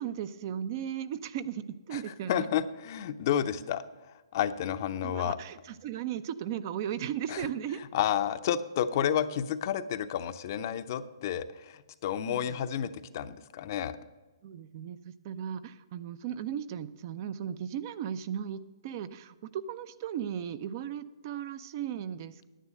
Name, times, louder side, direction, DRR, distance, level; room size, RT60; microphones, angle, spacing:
voice 1, 0.0-2.5 5.0-7.8 12.2-12.6 14.4-22.5, right 9 dB, 45° right, 14 dB, 0.6 m, -36 dB
voice 2, 1.9-3.8 4.3-5.4 7.3-7.4 7.9-14.0, left 9 dB, 45° left, 11 dB, 0.7 m, -31 dB
10.0 x 9.0 x 6.4 m, 1.2 s
hypercardioid pair, 135°, 2 cm